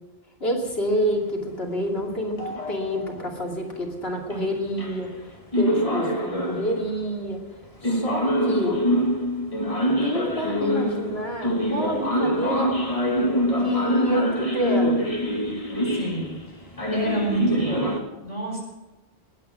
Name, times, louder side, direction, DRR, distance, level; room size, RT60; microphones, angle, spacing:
voice 1, 0.4-7.4 7.8-8.8 10.0-12.7 13.6-15.0, equal, 65° left, 0 dB, 3.1 m, -28 dB
sound 1, 2.4-3.3 4.3-4.4 4.8-5.2 5.5-6.9 7.8-18.0, equal, 30° left, 2.3 m, -25 dB
voice 2, 15.9-17.9 18.2-18.6, right 3 dB, 30° right, -2 dB, 4.6 m, -29 dB
20.5 x 9.4 x 6.0 m, 1.1 s
omnidirectional pair, 1.1 m